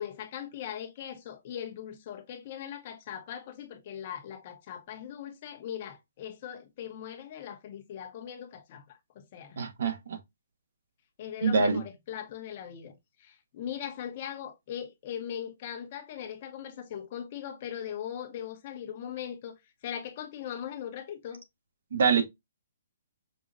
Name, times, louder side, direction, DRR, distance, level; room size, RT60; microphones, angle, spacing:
voice 1, 0.0-9.6 11.2-12.9 13.2-19.6 19.8-21.4, left 9 dB, 40° left, 1.0 m, -40 dB
voice 2, 9.6-10.2 11.4-11.8 21.9-22.2, right 5 dB, 65° right, 1.1 m, -25 dB
5.2 x 2.4 x 2.6 m
hypercardioid pair, 160°, 0 cm